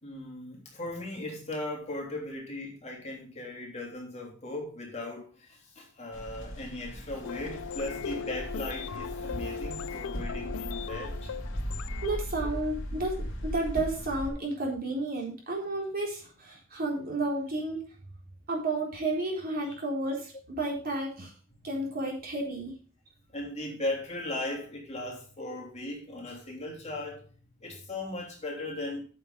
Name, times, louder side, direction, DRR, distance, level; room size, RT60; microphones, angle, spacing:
voice 1, 0.0-11.3 19.6-19.8 23.3-27.3 27.6-29.0, left 1 dB, 35° left, 3.3 m, -37 dB
sound 1, 6.1-14.3, equal, 65° left, 3.0 m, -38 dB
sound 2, 7.2-12.2, left 6 dB, 90° left, 0.5 m, -38 dB
voice 2, 12.0-13.2 13.4-17.8 18.5-21.3 21.6-22.7, right 2 dB, 45° right, 3.9 m, -32 dB
8.7 x 7.0 x 5.2 m
head